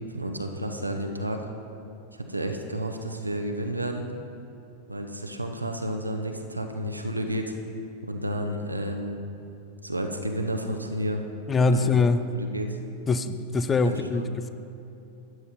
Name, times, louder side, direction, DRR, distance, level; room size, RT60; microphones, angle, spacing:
voice 1, 0.1-1.5 2.1-4.1 4.9-7.5 8.0-9.2 9.8-11.2 11.7-11.9 12.3-12.8 13.8-14.3, right 1 dB, 85° right, 4 dB, 0.8 m, -31 dB
voice 2, 11.5-12.3 13.1-14.5, left 3 dB, 20° left, 11 dB, 0.5 m, -23 dB
13.0 x 9.3 x 4.2 m, 2.9 s
figure-of-eight pair, 90°, 0 cm